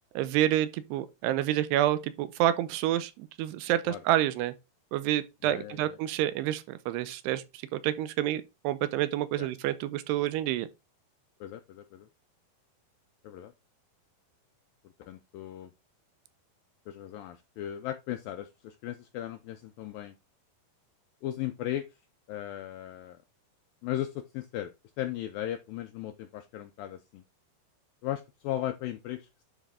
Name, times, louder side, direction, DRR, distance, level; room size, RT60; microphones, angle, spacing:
voice 1, 0.2-4.5 4.9-10.7, right 13 dB, 85° right, 2.7 m, -28 dB
voice 2, 5.4-6.0 9.4-9.5 11.4-12.1 13.2-13.5 15.0-15.7 16.9-20.2 21.2-21.9 22.3-23.2 23.8-27.2 28.0-29.4, left 12 dB, 85° left, 2.0 m, -37 dB
9.9 x 4.0 x 3.6 m
omnidirectional pair, 4.8 m